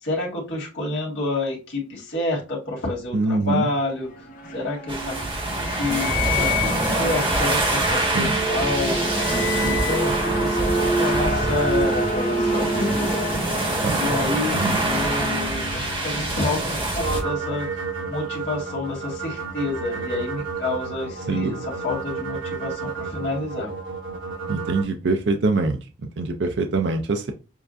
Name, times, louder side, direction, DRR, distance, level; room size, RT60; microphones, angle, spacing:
voice 1, 0.0-4.3 4.5-5.2 5.5-13.2 13.9-17.7 18.0-23.7, left 2 dB, 65° left, -1 dB, 1.8 m, -29 dB
voice 2, 3.1-3.7 8.1-8.4 13.8-14.0 14.5-14.8 21.3-21.6 24.5-27.3, right 3 dB, 60° right, 5 dB, 0.4 m, -24 dB
sound 1, 3.8-17.5, equal, 40° left, 0.8 m, -27 dB
sound 2, 4.9-17.2, right 1 dB, 25° right, 1.5 m, -25 dB
sound 3, 17.0-24.8, right 4 dB, 75° right, 1.3 m, -31 dB
6.9 x 2.5 x 2.5 m, 0.31 s
head